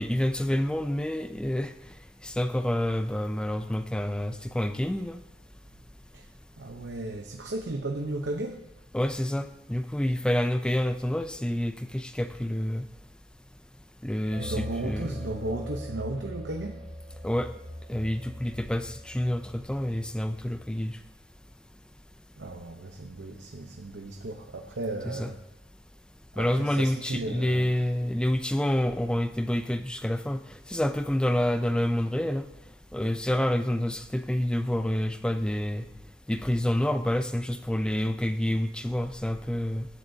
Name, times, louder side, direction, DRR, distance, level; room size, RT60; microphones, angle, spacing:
voice 1, 0.0-1.7 2.2-5.2 8.9-12.8 14.0-15.1 17.2-17.5 17.9-20.9 25.0-25.3 26.4-30.4 30.7-32.5 32.9-35.8 36.3-39.9, left 1 dB, 5° left, 9 dB, 0.4 m, -28 dB
voice 2, 6.6-8.6 14.4-16.8 22.4-25.4 26.4-27.8, right 2 dB, 80° right, 3 dB, 0.8 m, -35 dB
sound 1, 14.3-20.8, equal, 60° right, 3.0 m, -41 dB
15.0 x 11.0 x 2.8 m, 0.94 s
head